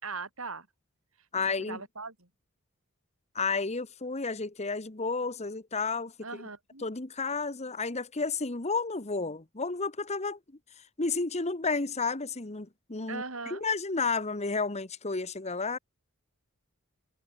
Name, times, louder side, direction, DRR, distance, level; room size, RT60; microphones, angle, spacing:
voice 1, 0.0-0.7 1.4-2.3 6.2-6.9 9.3-9.4 13.1-13.6, right 4 dB, 65° right, 5.9 m, -40 dB
voice 2, 1.3-1.8 3.3-6.1 6.8-10.4 11.0-15.8, left 4 dB, 30° left, 1.3 m, -31 dB
head